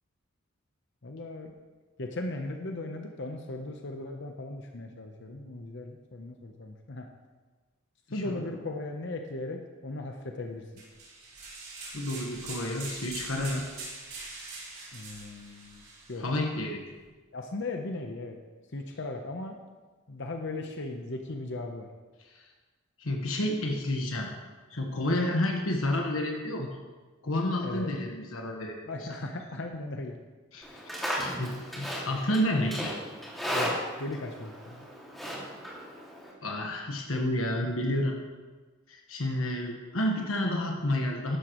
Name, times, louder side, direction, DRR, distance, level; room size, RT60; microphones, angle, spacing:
voice 1, 1.0-1.5 2.0-7.1 8.1-10.7 14.9-16.2 17.3-18.4 18.7-19.6 20.1-21.9 27.6-27.9 28.8-30.2 30.6-30.9 33.5-34.9, left 2 dB, 60° left, 3 dB, 0.8 m, -37 dB
sound 1, 10.8-16.2, right 3 dB, 50° right, 4.1 m, -43 dB
voice 2, 11.9-13.6 16.2-16.8 22.3-22.4 23.0-24.3 24.7-26.7 27.2-28.8 30.5-30.7 31.4-32.9 36.4-38.2 38.9-41.4, left 1 dB, 75° left, 1 dB, 1.3 m, -30 dB
Livestock farm animals working animals, 30.6-36.3, equal, ahead, 2.2 m, -35 dB
13.5 x 11.5 x 3.1 m, 1.3 s
head